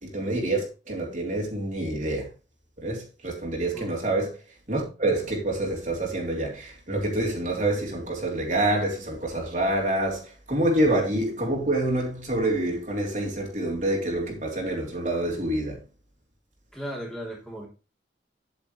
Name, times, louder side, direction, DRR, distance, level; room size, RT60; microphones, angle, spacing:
voice 1, 0.0-2.3 2.8-4.3 4.7-15.8, right 1 dB, 45° right, 3.2 m, -27 dB
voice 2, 16.7-17.7, equal, 5° left, 3.2 m, -36 dB
9.8 x 8.6 x 3.2 m
head